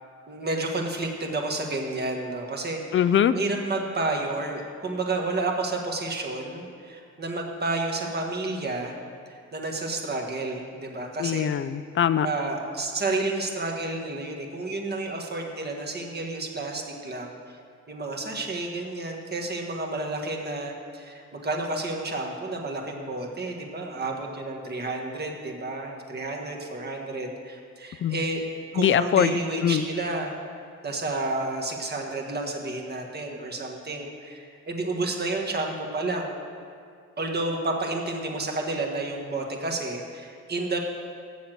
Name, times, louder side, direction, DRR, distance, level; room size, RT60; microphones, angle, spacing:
voice 1, 0.3-3.0 3.3-9.0 9.3-11.5 12.2-17.4 17.9-28.4 28.7-30.3 30.8-36.4 37.2-40.8, right 2 dB, 35° right, 1 dB, 1.5 m, -30 dB
voice 2, 2.9-3.3 11.2-12.3 28.0-28.2 28.8-29.8, left 9 dB, 40° left, 14 dB, 0.5 m, -22 dB
7.8 x 7.1 x 7.6 m, 2.3 s
cardioid pair, 90°, 30 cm